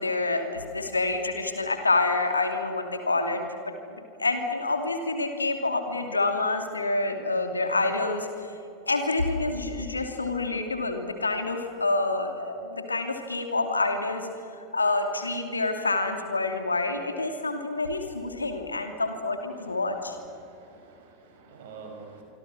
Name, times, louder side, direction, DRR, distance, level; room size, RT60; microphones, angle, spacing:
voice 1, 0.0-8.5 8.9-14.3 14.7-20.2, left 2 dB, 80° left, 5 dB, 2.7 m, -27 dB
voice 2, 20.4-22.2, right 5 dB, 60° right, 3 dB, 5.8 m, -47 dB
26.0 x 25.5 x 6.2 m, 3.0 s
figure-of-eight pair, 85°, 0 cm